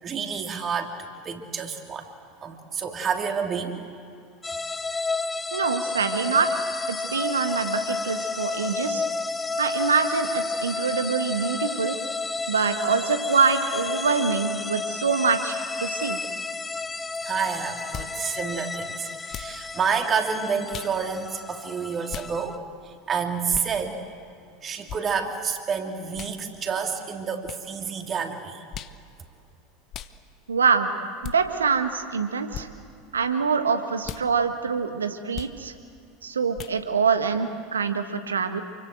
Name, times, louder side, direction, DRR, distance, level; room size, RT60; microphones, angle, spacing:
voice 1, 0.0-0.9 1.2-2.1 2.4-3.9 17.2-22.6 22.8-24.0 24.6-28.7, right 6 dB, 30° right, 4 dB, 3.0 m, -29 dB
sound 1, 4.4-22.6, left 4 dB, 15° left, 0.9 m, -31 dB
voice 2, 5.5-6.6 6.9-9.0 9.6-12.0 12.5-16.2 30.5-30.9 31.2-32.7 33.1-35.7 36.2-38.6, right 5 dB, 75° right, 8 dB, 1.7 m, -25 dB
sound 2, 17.9-18.2 19.3-19.6 20.7-21.0 22.1-22.3 23.5-23.7 24.9-25.0 26.1-26.4 27.4-27.6 28.7-29.0 29.9-30.1 31.2-31.4 32.5-32.7 34.0-34.3 35.3-35.6 36.5-36.8, left 10 dB, 40° left, 1.0 m, -37 dB
28.5 x 24.0 x 7.9 m, 2.4 s
figure-of-eight pair, 75°, 0 cm